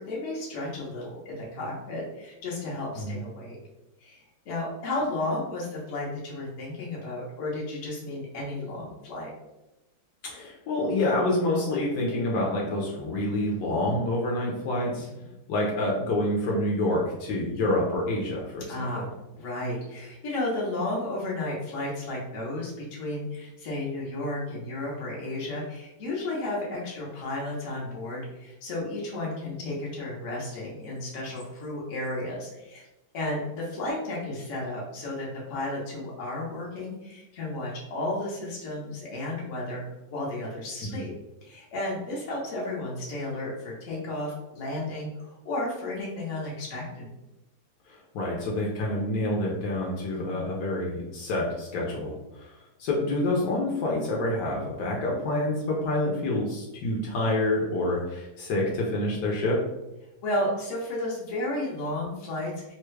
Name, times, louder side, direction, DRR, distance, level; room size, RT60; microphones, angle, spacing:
voice 1, 0.0-3.6 4.0-9.3 13.9-14.1 15.0-15.3 18.7-19.1 19.4-32.8 33.1-39.8 40.1-41.1 41.4-47.1 50.0-50.6 60.2-62.7, left 1 dB, 50° left, -4 dB, 1.0 m, -33 dB
voice 2, 10.2-15.1 15.5-18.9 40.8-41.0 47.9-52.5 52.8-59.6, left 1 dB, 75° left, -3 dB, 1.3 m, -27 dB
3.2 x 2.3 x 3.1 m, 0.97 s
omnidirectional pair, 2.0 m